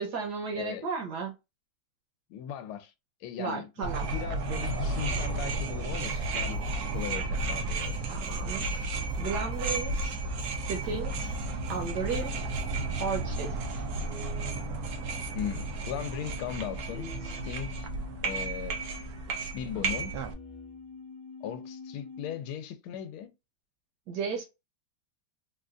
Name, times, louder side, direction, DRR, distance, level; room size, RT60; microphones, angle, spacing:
voice 1, 0.0-1.3 3.4-4.1 8.1-10.2 10.6-11.3 11.7-12.4 13.0-13.8 24.1-24.4, right 5 dB, 65° right, 1.2 m, -34 dB
voice 2, 0.5-0.8 2.3-2.9 3.2-3.7 4.0-8.1 15.3-17.9 18.2-18.8 19.5-20.1 21.4-23.3, left 9 dB, 85° left, 1.4 m, -38 dB
sound 1, 3.8-20.3, right 3 dB, 80° right, 0.8 m, -33 dB
sound 2, 5.9-12.7, right 3 dB, 40° right, 0.7 m, -54 dB
sound 3, 11.3-22.5, left 4 dB, 50° left, 0.5 m, -48 dB
3.9 x 2.3 x 2.4 m
omnidirectional pair, 2.3 m